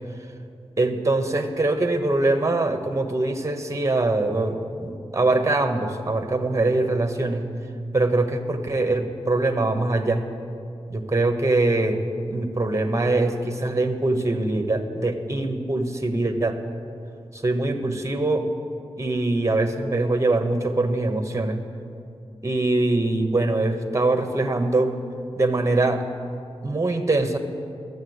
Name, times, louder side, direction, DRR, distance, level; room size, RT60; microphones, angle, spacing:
voice 1, 0.8-7.5 7.9-10.2 10.9-12.0 12.3-16.6 17.3-18.4 19.0-21.6 22.4-24.9 25.4-26.0 26.6-27.4, right 2 dB, 30° right, 7 dB, 1.1 m, -23 dB
12.5 x 7.1 x 8.0 m, 2.5 s
wide cardioid pair, 65°, 11 cm